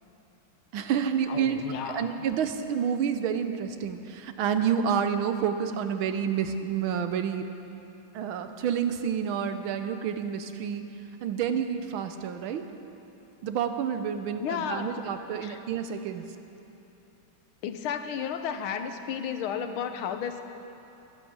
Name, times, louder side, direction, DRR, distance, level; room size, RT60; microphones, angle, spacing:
voice 1, 0.7-7.4 8.1-10.8 11.2-12.7 13.4-16.2, right 7 dB, 85° right, 8 dB, 1.6 m, -29 dB
voice 2, 1.3-2.2 14.4-15.0 15.4-15.6 17.6-20.4, left 8 dB, 90° left, 7 dB, 1.7 m, -33 dB
12.0 x 11.5 x 8.7 m, 2.9 s
omnidirectional pair, 2.3 m